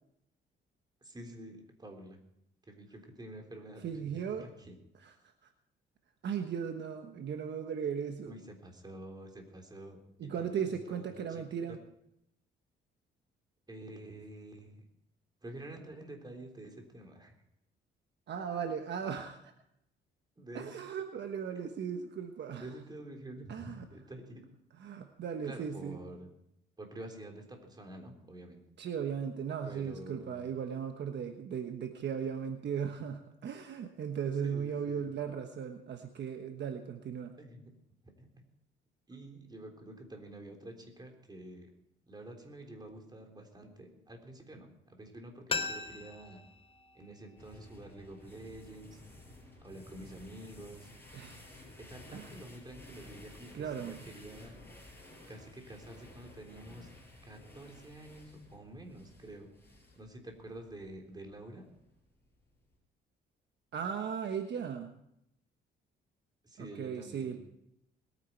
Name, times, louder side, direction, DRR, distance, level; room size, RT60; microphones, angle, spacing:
voice 1, 1.0-2.2 2.7-4.8 8.3-11.8 13.7-14.8 15.4-17.4 20.4-20.8 22.5-24.4 25.4-26.3 26.8-28.6 29.6-30.4 34.4-35.1 37.4-37.7 38.2-38.3 39.1-41.7 42.1-46.4 46.9-49.0 49.6-50.9 51.8-54.5 55.3-56.9 57.2-59.5 60.0-61.7 66.4-67.3, right 1 dB, 20° right, 3 dB, 3.6 m, -48 dB
voice 2, 3.8-4.5 5.0-5.1 6.2-8.3 10.2-11.8 18.3-19.4 20.5-22.7 23.5-23.9 24.8-26.0 28.8-37.3 51.1-51.4 52.1-52.3 53.5-54.0 63.7-64.9 66.6-67.4, right 7 dB, 60° right, 6 dB, 1.2 m, -37 dB
sound 1, 45.5-48.3 48.6-48.7, left 4 dB, 30° left, 1.1 m, -40 dB
sound 2, 47.4-62.8, left 1 dB, 10° left, 5.7 m, -54 dB
21.0 x 9.7 x 4.6 m, 0.79 s
cardioid pair, 90°, 20 cm